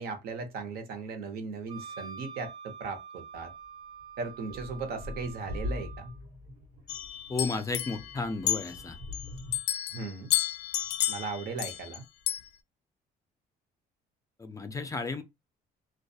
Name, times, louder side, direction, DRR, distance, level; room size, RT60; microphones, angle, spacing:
voice 1, 0.0-3.5 4.2-6.1 9.9-10.3 11.1-12.0, right 4 dB, 65° right, 0.7 m, -37 dB
Wind instrument woodwind instrument, 1.7-6.2, right 6 dB, 30° right, 0.6 m, -46 dB
sound 1, 3.3-3.5 4.0-9.6, left 2 dB, 85° right, 1.2 m, -42 dB
sound 2, 6.9-9.3 9.5-12.0 12.3-12.4, left 12 dB, 85° left, 0.4 m, -32 dB
voice 2, 7.3-9.0 14.4-15.2, left 3 dB, 20° left, 0.4 m, -33 dB
2.3 x 2.2 x 2.6 m
cardioid pair, 110°, 17 cm